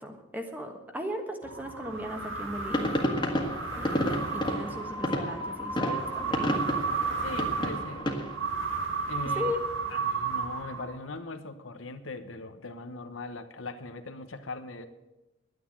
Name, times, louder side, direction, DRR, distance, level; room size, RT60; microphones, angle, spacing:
voice 1, 0.0-2.9 3.7-6.7 9.4-9.6, left 1 dB, 10° right, 4 dB, 1.4 m, -37 dB
sound 1, 1.4-11.2, right 4 dB, 80° right, 1.9 m, -33 dB
sound 2, 2.7-8.4, equal, 25° left, 1.7 m, -31 dB
voice 2, 7.1-8.1 9.1-9.5 9.9-14.9, left 3 dB, 80° left, 9 dB, 1.1 m, -40 dB
11.5 x 9.4 x 8.7 m, 1.0 s
head